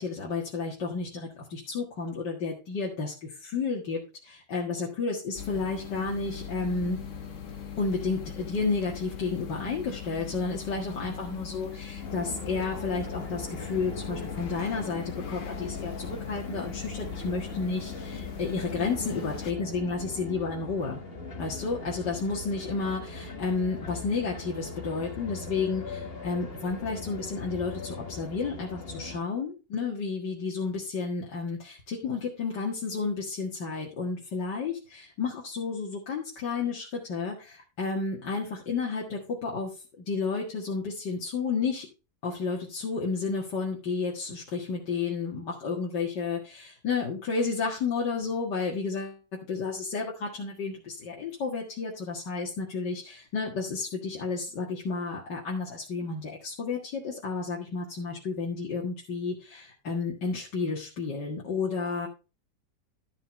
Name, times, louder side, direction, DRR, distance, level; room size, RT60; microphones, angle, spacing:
voice 1, 0.0-7.0 7.8-21.0 21.4-41.9 42.2-49.1 49.5-62.1, left 4 dB, 80° left, -3 dB, 2.4 m, -31 dB
sound 1, 5.4-19.5, left 7 dB, 50° left, 1.3 m, -40 dB
sound 2, 12.0-29.2, left 3 dB, 35° left, 1.7 m, -40 dB
12.5 x 5.6 x 4.2 m, 0.31 s
omnidirectional pair, 1.9 m